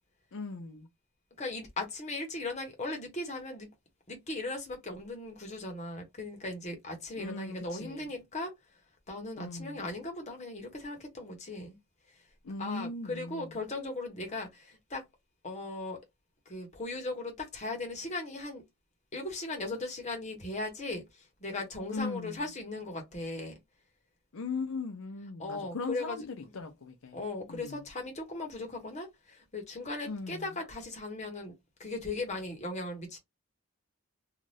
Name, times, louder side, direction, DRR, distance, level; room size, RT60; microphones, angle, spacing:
voice 1, 0.3-0.9 7.2-8.1 9.4-9.9 12.4-13.6 21.9-22.4 24.3-27.2 27.5-27.8 30.1-30.5, left 3 dB, 65° left, 0.5 m, -39 dB
voice 2, 1.4-3.7 4.1-8.5 9.1-11.8 12.6-15.0 15.4-16.0 16.5-18.6 19.1-23.6 25.4-26.2 27.1-31.5 31.8-33.2, left 2 dB, 30° left, 0.9 m, -38 dB
2.6 x 2.4 x 3.2 m
head